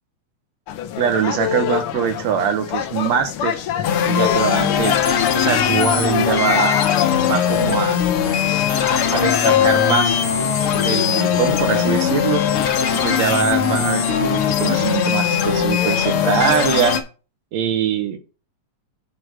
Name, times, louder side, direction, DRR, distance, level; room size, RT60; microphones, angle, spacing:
sound 1, 0.7-16.3, left 10 dB, 85° left, 1.2 m, -26 dB
voice 1, 1.0-3.6 4.1-5.0 5.4-6.8 7.2-8.0 9.1-10.2 10.7-12.4 12.9-17.0 17.5-18.2, right 8 dB, 70° right, 8 dB, 2.0 m, -22 dB
sound 2, 3.8-17.0, left 7 dB, 65° left, 1.5 m, -20 dB
6.5 x 4.5 x 6.0 m, 0.35 s
omnidirectional pair, 3.4 m